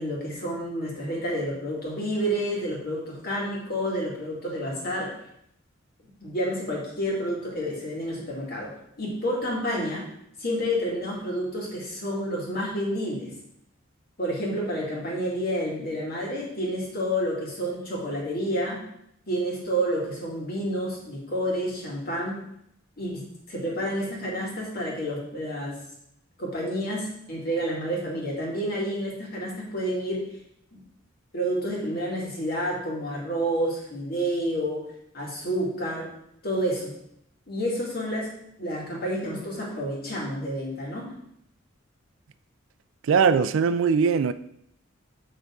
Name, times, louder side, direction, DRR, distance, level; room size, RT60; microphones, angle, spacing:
voice 1, 0.0-5.1 6.2-10.1 10.4-13.3 14.2-18.8 19.3-22.4 23.0-25.8 26.4-30.2 30.7-30.8 31.3-34.9 35.1-36.1 36.4-37.0 37.5-41.1, equal, 50° left, 2.2 m, -29 dB
voice 2, 43.0-44.3, right 6 dB, 70° right, 0.3 m, -20 dB
6.7 x 5.8 x 3.7 m
head